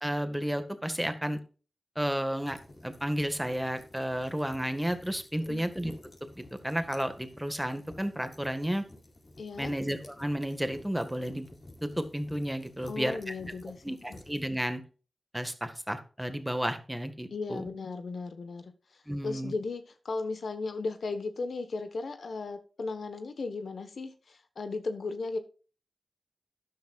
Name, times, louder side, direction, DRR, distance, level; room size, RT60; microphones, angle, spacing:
voice 1, 0.0-1.4 2.0-2.6 2.8-5.9 6.4-8.8 9.6-11.5 11.8-13.3 13.8-14.8 15.3-17.6 19.1-19.5, equal, 5° right, 1.7 m, -32 dB
sound 1, 2.4-14.4, left 1 dB, 55° left, 4.4 m, -52 dB
voice 2, 9.4-9.7 12.9-14.2 17.3-25.4, left 3 dB, 75° left, 1.2 m, -36 dB
13.0 x 10.5 x 2.4 m
cardioid pair, 60°, 0 cm